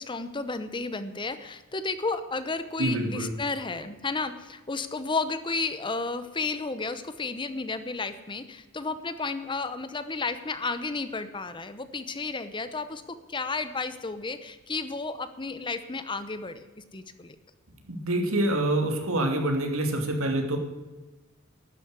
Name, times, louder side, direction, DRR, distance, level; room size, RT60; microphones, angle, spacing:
voice 1, 0.0-16.6 16.9-17.4, left 3 dB, 25° left, 11 dB, 0.8 m, -32 dB
voice 2, 2.8-3.3 17.9-20.6, right 1 dB, 80° right, 4 dB, 2.7 m, -26 dB
12.0 x 9.8 x 8.0 m, 1.2 s
head